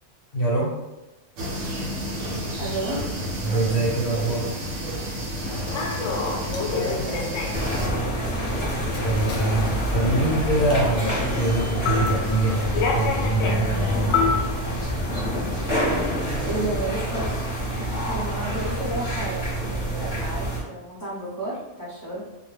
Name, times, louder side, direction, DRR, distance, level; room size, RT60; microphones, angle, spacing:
voice 1, 0.3-0.7 3.4-4.4 9.0-14.4, right 2 dB, 55° left, -6 dB, 0.8 m, -24 dB
sound 1, 1.4-7.9, equal, 80° right, 0.9 m, -31 dB
voice 2, 2.6-3.1 6.2-8.4 16.4-17.3 18.0-22.2, right 1 dB, 20° right, -9 dB, 0.7 m, -32 dB
Human voice / Subway metro underground, 5.4-14.8, left 4 dB, 85° left, 0.9 m, -29 dB
sound 2, 7.5-20.6, equal, 25° left, 0.8 m, -27 dB
2.3 x 2.1 x 3.2 m, 1.0 s
omnidirectional pair, 1.3 m